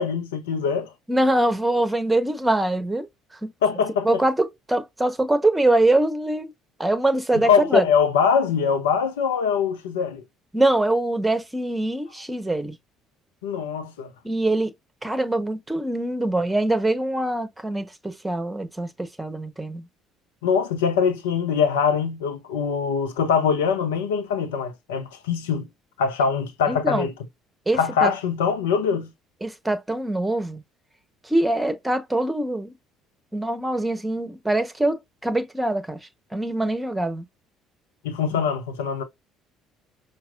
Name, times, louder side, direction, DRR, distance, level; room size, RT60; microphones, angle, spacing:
voice 1, 0.0-0.9 3.6-4.1 7.3-10.2 13.4-14.1 20.4-25.7 26.0-27.1 27.7-29.1 38.0-39.0, left 6 dB, 80° left, 0.6 m, -23 dB
voice 2, 1.1-3.1 3.4-3.5 4.0-6.5 6.8-7.8 10.5-12.8 14.2-14.7 15.0-19.9 26.7-27.1 27.7-28.1 29.4-30.6 31.2-32.7 33.3-36.0 36.3-37.2, right 1 dB, 10° right, 1.0 m, -23 dB
5.8 x 2.0 x 2.4 m
hypercardioid pair, 55°, 0 cm